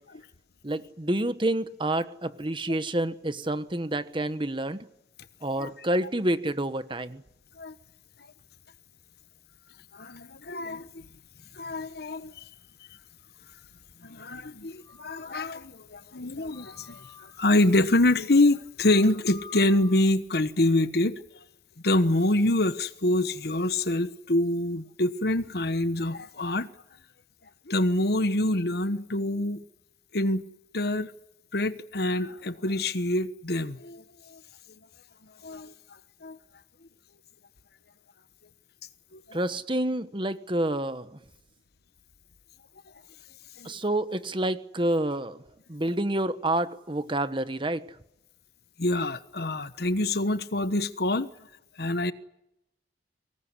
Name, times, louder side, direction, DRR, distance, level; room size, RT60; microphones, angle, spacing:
voice 1, 0.6-4.8 5.4-7.2 39.3-41.2 43.6-45.4 45.7-47.8, right 1 dB, 25° right, 1.2 m, -28 dB
voice 2, 9.9-11.0 11.5-12.4 14.0-17.1 17.4-21.2 21.8-26.7 27.7-29.6 30.1-30.4 30.7-31.1 31.5-34.0 34.3-34.4 35.4-35.7 36.2-36.4 39.1-39.4 43.6-43.8 48.8-51.3 51.8-52.1, left 1 dB, 60° left, 1.2 m, -26 dB
sound 1, 14.8-15.5 16.5-17.7 18.7-20.1, left 4 dB, 20° left, 2.3 m, -49 dB
24.5 x 19.5 x 9.8 m
head